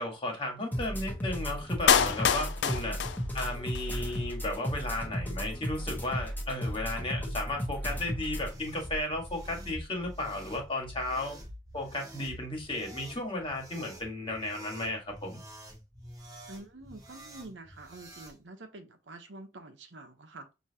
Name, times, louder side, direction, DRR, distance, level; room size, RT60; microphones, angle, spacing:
voice 1, 0.0-3.0 3.3-11.4 11.7-15.4, left 1 dB, 30° left, 1.5 m, -34 dB
sound 1, 0.7-8.5, equal, 10° left, 1.0 m, -35 dB
Clapping, 1.9-3.9 4.1-4.2, left 8 dB, 65° left, 0.4 m, -26 dB
sound 2, 8.2-18.4, equal, 20° right, 1.1 m, -47 dB
voice 2, 16.5-20.5, right 2 dB, 85° right, 0.9 m, -47 dB
6.2 x 2.8 x 2.8 m
head